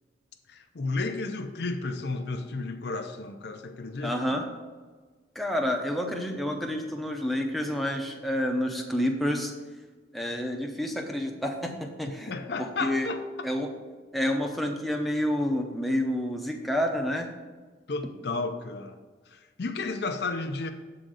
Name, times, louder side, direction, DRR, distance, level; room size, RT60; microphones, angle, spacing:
voice 1, 0.5-4.1 12.3-13.2 17.9-19.0 19.3-20.7, left 3 dB, 55° left, 5 dB, 0.5 m, -32 dB
voice 2, 4.0-4.4 5.3-9.5 10.1-13.1 13.4-13.7 14.1-17.3, equal, ahead, 2 dB, 0.7 m, -29 dB
7.6 x 3.8 x 6.3 m, 1.4 s
head